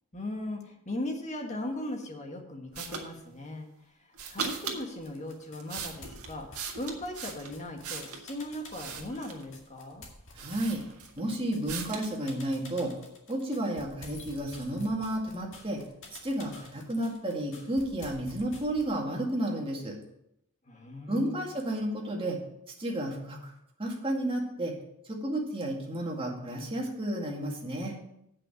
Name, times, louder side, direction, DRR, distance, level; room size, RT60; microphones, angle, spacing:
voice 1, 0.1-3.7 4.0-10.1 20.6-21.5, left 1 dB, 30° left, 3 dB, 1.5 m, -38 dB
sound 1, 2.7-3.1 4.1-4.8 5.4-8.3 8.7-9.5 10.0-10.1 10.4-11.2 11.7-12.1, right 5 dB, 80° right, 1.6 m, -38 dB
sound 2, 4.8-19.0, left 2 dB, 60° left, 2.1 m, -50 dB
voice 2, 10.3-10.8 11.2-12.9 13.3-15.8 16.2-20.0 21.1-22.4 22.8-23.5 23.8-24.7 25.1-27.9, right 1 dB, 25° right, -1 dB, 2.0 m, -32 dB
8.3 x 6.0 x 7.3 m, 0.78 s
head